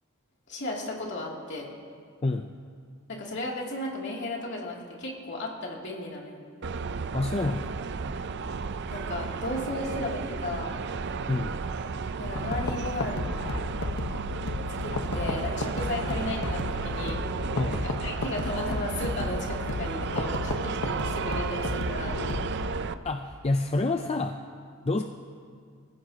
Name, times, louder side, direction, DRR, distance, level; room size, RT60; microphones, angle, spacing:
voice 1, 0.5-1.7 3.1-6.4 8.9-10.8 12.2-13.3 14.8-17.2 17.7-22.2, left 1 dB, 55° left, -2 dB, 2.8 m, -35 dB
sound 1, 6.6-22.9, right 5 dB, 50° right, 0.5 m, -33 dB
voice 2, 7.1-7.8 11.3-11.6 17.5-17.8 23.0-24.4 24.8-25.0, left 2 dB, 30° left, 5 dB, 0.5 m, -28 dB
sound 2, 12.4-22.8, left 3 dB, 80° left, 1.2 m, -34 dB
27.0 x 15.5 x 2.9 m, 2.1 s
head